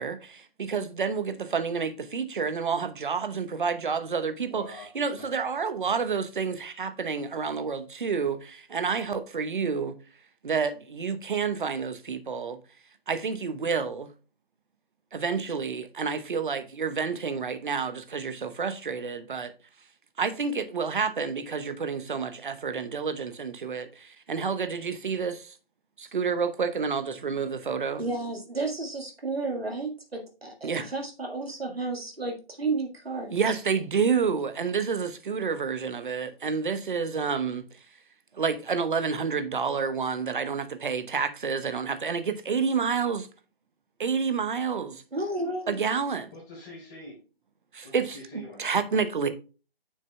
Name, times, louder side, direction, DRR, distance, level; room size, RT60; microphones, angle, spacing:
voice 1, 0.0-10.0 10.4-12.6 13.1-14.1 15.1-19.5 20.2-25.5 26.0-28.0 30.6-30.9 33.3-37.6 38.3-43.3 44.0-45.0 45.7-46.3 47.7-48.2 48.6-49.3, right 5 dB, 55° right, 1.0 m, -29 dB
voice 2, 4.5-4.9 5.1-5.3 46.3-47.2 47.8-48.7, left 1 dB, 20° left, 4.2 m, -44 dB
voice 3, 28.0-33.6 45.1-45.8, right 3 dB, 85° right, 1.8 m, -32 dB
9.1 x 6.4 x 2.2 m
figure-of-eight pair, 145°, 30 cm